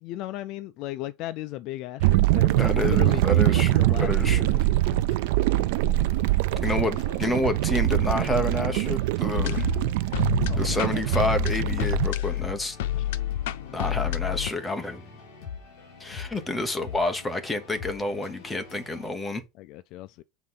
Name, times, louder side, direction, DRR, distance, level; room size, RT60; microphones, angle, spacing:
voice 1, 0.0-4.6 7.0-7.2 10.5-11.3 11.8-11.9 12.9-13.0 19.6-20.2, left 15 dB, 40° left, 0.3 m, -36 dB
sound 1, 2.0-12.1, right 17 dB, 60° right, 0.4 m, -23 dB
voice 2, 2.6-4.6 6.6-9.7 10.6-12.8 13.7-15.1 16.0-19.4, left 2 dB, 5° left, 1.0 m, -29 dB
sound 2, 4.2-19.1, left 6 dB, 65° left, 4.5 m, -43 dB
sound 3, 9.4-14.5, left 13 dB, 85° left, 0.6 m, -29 dB
7.9 x 3.7 x 5.6 m
supercardioid pair, 175°, 0 cm